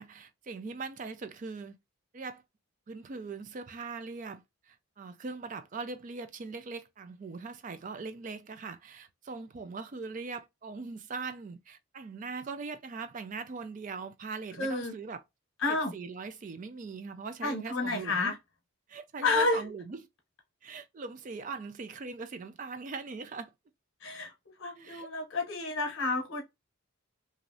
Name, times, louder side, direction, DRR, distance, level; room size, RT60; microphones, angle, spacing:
voice 1, 0.0-1.8 2.1-2.4 2.9-15.2 15.7-18.3 18.9-20.0 20.6-23.5 24.8-25.1, right 4 dB, 35° right, 0.3 m, -41 dB
voice 2, 14.6-14.9 15.6-15.9 17.4-18.3 19.2-19.7 24.0-24.3 24.6-26.4, left 3 dB, 65° left, 0.9 m, -30 dB
3.0 x 2.6 x 2.6 m
head